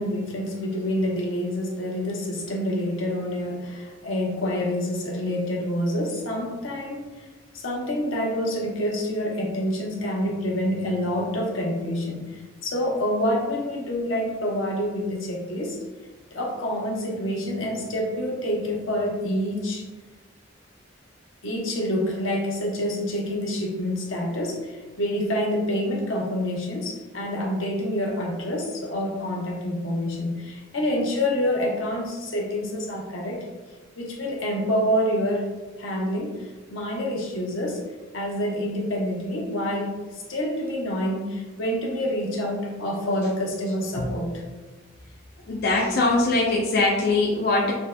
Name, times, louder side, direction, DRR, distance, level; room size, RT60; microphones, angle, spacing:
voice 1, 0.0-7.2 7.5-15.8 16.3-19.8 21.4-33.5 34.0-35.5 35.8-37.8 38.1-44.4, equal, 85° left, -1 dB, 1.0 m, -27 dB
voice 2, 45.5-47.7, left 2 dB, 55° left, -2 dB, 0.5 m, -22 dB
6.9 x 2.8 x 2.2 m, 1.2 s
head